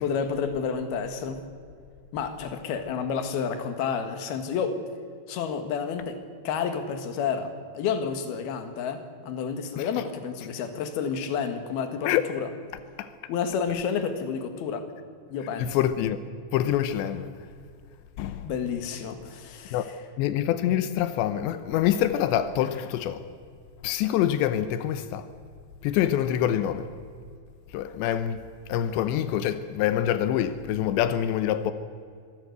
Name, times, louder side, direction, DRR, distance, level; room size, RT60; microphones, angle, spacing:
voice 1, 0.0-1.4 2.1-4.8 5.3-6.2 6.5-12.5 13.3-14.9 15.3-15.8 18.4-19.9, left 6 dB, 65° left, 3.5 m, -30 dB
voice 2, 15.6-16.2 16.5-17.3 18.2-18.5 19.7-19.8 20.2-23.2 23.8-25.2 25.8-26.9 27.7-28.4 28.7-31.7, left 11 dB, 90° left, 3.1 m, -25 dB
25.0 x 16.5 x 8.0 m
omnidirectional pair, 4.9 m